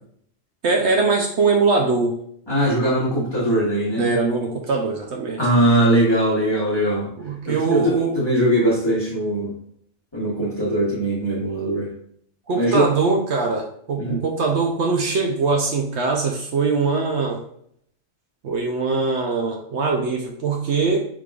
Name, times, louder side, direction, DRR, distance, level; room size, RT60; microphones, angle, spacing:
voice 1, 0.6-2.1 3.9-5.4 7.2-8.1 12.5-17.4 18.4-21.1, right 4 dB, 65° right, 2 dB, 0.8 m, -22 dB
voice 2, 2.5-4.1 5.4-7.1 7.4-9.5 10.1-11.9 12.5-12.9 14.0-14.2, right 1 dB, 20° left, -8 dB, 1.0 m, -20 dB
4.8 x 3.7 x 2.3 m, 0.67 s
omnidirectional pair, 1.3 m